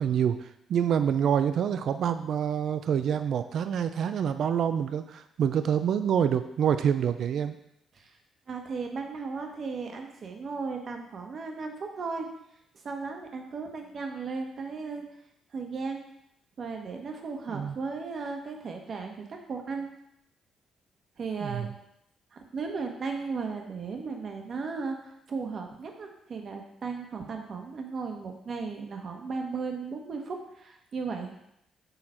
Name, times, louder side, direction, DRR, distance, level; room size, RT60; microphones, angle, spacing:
voice 1, 0.0-7.6 17.5-17.8 21.4-21.7, right 8 dB, 65° right, 10 dB, 0.4 m, -27 dB
voice 2, 8.5-12.3 12.8-15.0 15.5-16.0 16.6-19.9 21.2-21.7 22.3-31.3, right 4 dB, 50° right, 3 dB, 1.1 m, -36 dB
6.6 x 4.0 x 4.3 m, 0.79 s
cardioid pair, 90°, 0 cm